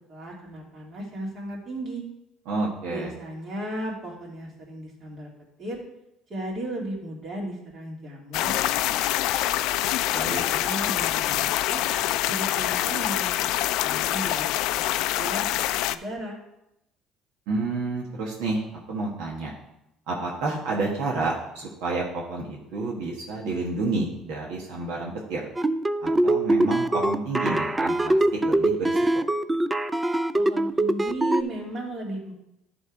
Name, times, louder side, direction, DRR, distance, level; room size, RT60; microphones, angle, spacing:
voice 1, 0.1-2.0 2.9-5.3 5.6-5.8 6.3-9.5 10.2-11.8 12.3-13.3 13.8-16.4 30.3-32.3, right 1 dB, 40° right, -3 dB, 2.8 m, -36 dB
voice 2, 2.5-3.1 10.1-10.4 17.5-19.5 20.1-25.5 26.0-29.1, right 3 dB, 80° right, -3 dB, 1.6 m, -30 dB
sound 1, 8.3-16.0, left 14 dB, 75° left, 0.3 m, -25 dB
sound 2, 25.6-31.4, right 1 dB, 15° right, 0.4 m, -23 dB
11.0 x 3.7 x 4.8 m, 0.85 s
cardioid pair, 110°, 0 cm